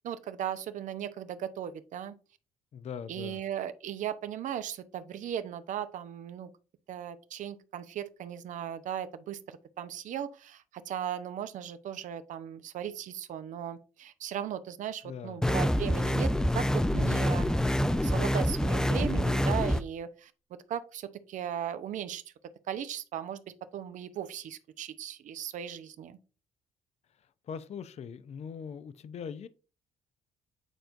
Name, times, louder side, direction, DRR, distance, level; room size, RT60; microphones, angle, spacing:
voice 1, 0.0-2.2 3.1-6.5 6.9-20.3 20.7-22.2 22.7-23.4 23.7-26.2, right 10 dB, 65° right, 0.7 m, -37 dB
voice 2, 2.7-3.4 15.0-15.4 27.5-29.5, left 7 dB, 50° left, 0.6 m, -41 dB
sound 1, 15.4-19.8, equal, 5° left, 0.5 m, -26 dB
9.0 x 4.4 x 2.6 m
hypercardioid pair, 50°, 14 cm